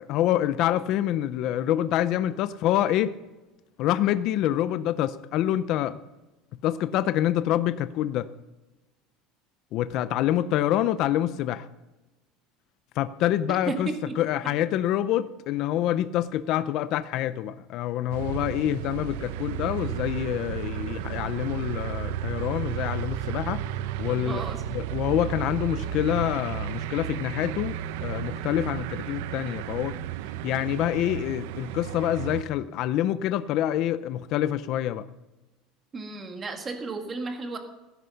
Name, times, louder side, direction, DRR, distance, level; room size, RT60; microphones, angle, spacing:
voice 1, 0.0-3.2 3.8-6.0 6.6-8.3 9.7-11.7 13.0-23.6 24.0-24.4 24.7-30.0 30.4-35.1, left 12 dB, 45° left, 0.5 m, -26 dB
voice 2, 13.5-14.2 24.1-24.6 35.9-37.6, right 3 dB, 20° right, 1.9 m, -34 dB
sound 1, 18.1-32.4, right 11 dB, 75° right, 0.7 m, -33 dB
16.5 x 11.5 x 5.8 m
cardioid pair, 175°, 0 cm